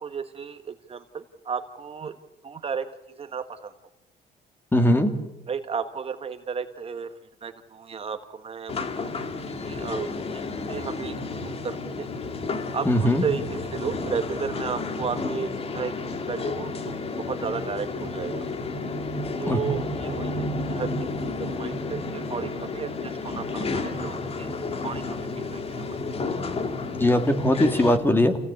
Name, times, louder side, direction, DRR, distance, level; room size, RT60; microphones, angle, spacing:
voice 1, 0.0-2.1 2.4-2.9 3.2-3.7 5.5-7.1 7.4-10.4 10.7-12.1 12.7-15.9 16.3-16.9 17.2-18.4 19.4-20.9 21.4-24.5 24.8-25.6, right 6 dB, 35° right, 8 dB, 1.5 m, -33 dB
voice 2, 4.7-5.1 12.9-13.2 19.5-19.6 26.9-28.4, left 1 dB, 15° left, 7 dB, 2.7 m, -20 dB
sound 1, 8.7-28.0, left 3 dB, 35° left, 2.2 m, -31 dB
28.5 x 17.0 x 8.5 m, 0.94 s
cardioid pair, 110°, 17 cm